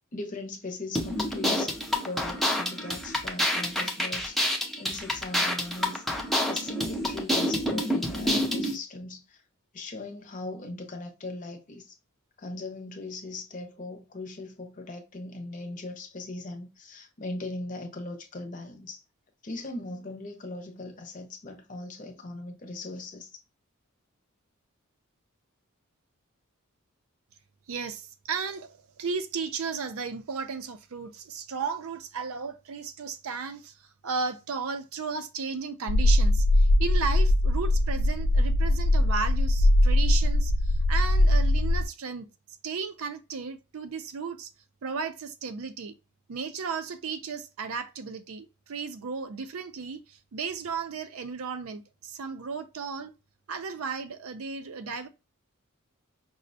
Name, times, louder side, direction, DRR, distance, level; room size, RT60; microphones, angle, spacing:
voice 1, 0.1-1.7 2.0-6.0 6.5-9.4 9.7-11.9 12.4-19.0 19.4-23.4, left 2 dB, 35° left, 0.6 m, -39 dB
sound 1, 0.9-8.7, left 1 dB, ahead, 0.5 m, -28 dB
voice 2, 27.7-42.3 42.6-44.5 44.8-45.9 46.3-53.1 53.5-55.1, right 5 dB, 75° right, 0.5 m, -34 dB
sound 2, 35.9-41.9, left 1 dB, 75° left, 0.3 m, -21 dB
5.0 x 2.0 x 2.6 m
head